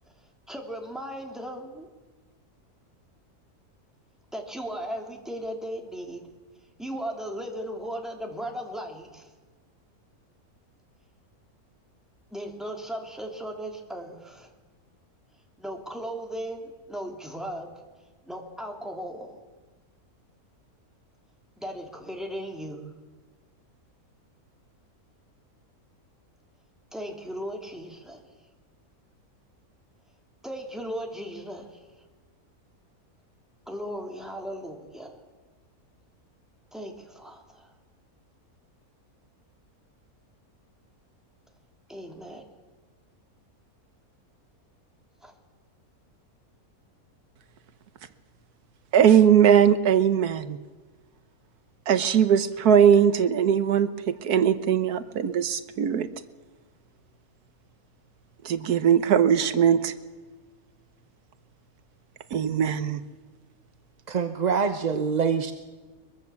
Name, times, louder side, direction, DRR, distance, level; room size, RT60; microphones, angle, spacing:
voice 1, 0.5-1.9 4.3-6.2 6.8-9.3 12.3-14.5 15.6-17.7 18.2-19.4 21.6-22.8 26.9-28.2 30.4-31.8 33.7-35.2 36.7-37.7 41.9-42.4 45.2-45.3, equal, ahead, 1 dB, 2.9 m, -36 dB
voice 2, 48.9-50.6 51.9-56.1 58.4-59.9 62.3-63.0, right 8 dB, 85° right, 11 dB, 1.5 m, -20 dB
voice 3, 64.1-65.5, right 6 dB, 35° right, 8 dB, 0.8 m, -25 dB
23.0 x 22.5 x 7.1 m, 1.3 s
omnidirectional pair, 1.6 m